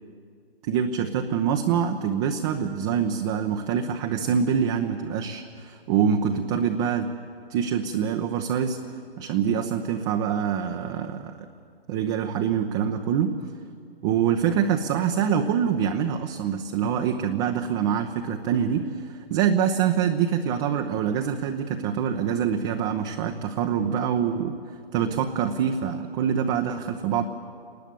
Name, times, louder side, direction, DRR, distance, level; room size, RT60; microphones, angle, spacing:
voice 1, 0.6-7.1 7.5-8.8 9.2-11.3 11.9-13.3 14.0-24.5 24.9-27.2, right 8 dB, 30° right, 4 dB, 1.0 m, -25 dB
28.0 x 20.0 x 7.0 m, 2.3 s
hypercardioid pair, 135°, 30 cm